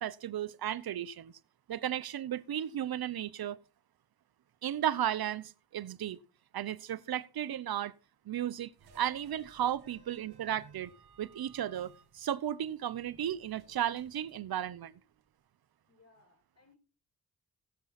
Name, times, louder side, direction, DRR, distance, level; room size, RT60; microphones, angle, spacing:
voice 1, 0.0-1.3 1.7-3.6 4.6-6.2 6.5-7.9 8.3-10.9 11.2-15.0, right 11 dB, 70° right, 0.9 m, -34 dB
sound 1, 8.8-15.3, right 4 dB, 90° right, 1.7 m, -61 dB
voice 2, 15.9-16.8, left 3 dB, 40° left, 5.7 m, -64 dB
18.5 x 7.1 x 4.2 m
supercardioid pair, 40°, 37 cm